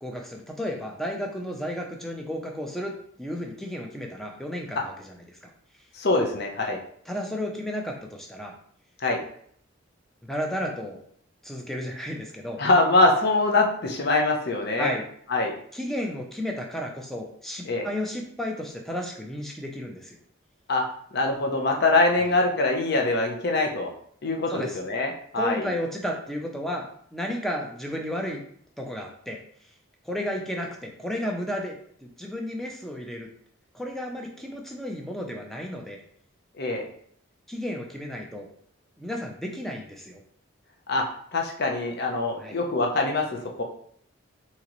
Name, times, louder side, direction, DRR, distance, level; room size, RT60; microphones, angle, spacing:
voice 1, 0.0-2.9 3.2-5.5 7.1-8.5 10.2-11.0 11.4-12.6 14.8-15.0 15.7-20.2 24.5-24.8 25.4-28.4 28.8-29.4 30.0-33.3 33.7-36.0 37.5-38.5 39.0-40.2 42.4-42.5, equal, ahead, 1 dB, 0.5 m, -33 dB
voice 2, 5.9-6.8 9.0-9.2 12.6-14.9 15.3-15.5 17.7-17.9 20.7-20.8 21.1-23.9 24.2-25.7 36.6-36.9 40.9-41.0 41.3-43.2 43.6-43.7, left 2 dB, 55° left, 2 dB, 0.7 m, -23 dB
3.8 x 2.9 x 3.0 m, 0.62 s
head